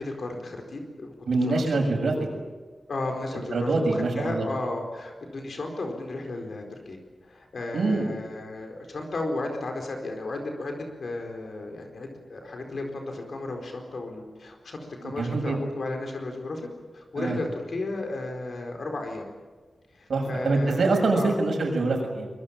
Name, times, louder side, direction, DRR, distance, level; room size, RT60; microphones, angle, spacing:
voice 1, 0.0-1.1 1.5-1.8 2.9-10.7 11.0-16.7 16.9-19.3 19.9-21.4, left 2 dB, 60° left, 3 dB, 4.4 m, -34 dB
voice 2, 1.3-2.1 3.3-4.5 7.7-8.1 15.0-15.6 17.2-17.4 20.1-22.3, right 3 dB, 75° right, 3 dB, 6.9 m, -25 dB
24.5 x 22.5 x 8.8 m, 1.4 s
wide cardioid pair, 150°, 0 cm